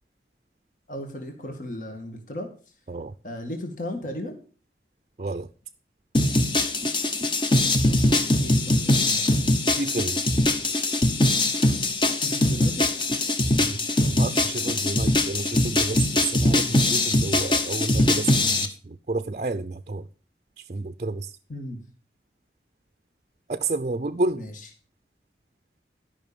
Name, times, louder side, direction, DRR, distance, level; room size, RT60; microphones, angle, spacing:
voice 1, 0.9-2.5 3.2-4.4 7.9-8.1 8.4-9.3 12.1-12.9 21.5-21.8 24.3-24.5, left 1 dB, 45° left, 2.0 m, -35 dB
voice 2, 5.2-5.5 9.6-10.2 13.6-20.1 20.6-21.4 23.5-24.5, right 3 dB, 40° right, 0.5 m, -30 dB
sound 1, 6.1-18.7, left 1 dB, 25° left, 1.1 m, -22 dB
13.0 x 5.8 x 6.9 m
head